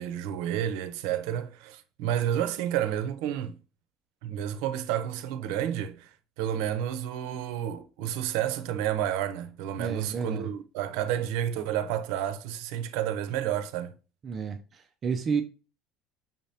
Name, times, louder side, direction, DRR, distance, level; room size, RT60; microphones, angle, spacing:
voice 1, 0.0-3.6 4.2-13.9, right 10 dB, 75° right, 0.6 m, -30 dB
voice 2, 9.8-10.5 14.2-15.4, right 6 dB, 25° right, 0.4 m, -31 dB
5.6 x 3.3 x 2.7 m
cardioid pair, 160°, 0 cm